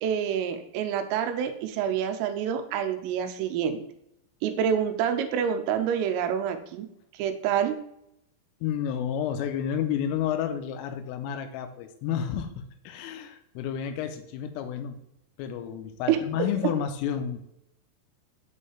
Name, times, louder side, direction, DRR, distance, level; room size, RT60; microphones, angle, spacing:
voice 1, 0.0-3.8 4.4-6.9 7.1-7.8 16.1-16.2, right 8 dB, 85° right, 8 dB, 3.3 m, -27 dB
voice 2, 8.6-12.5 12.9-15.0 15.4-17.4, left 9 dB, 85° left, 8 dB, 3.2 m, -30 dB
7.7 x 5.4 x 3.2 m, 0.79 s
omnidirectional pair, 5.8 m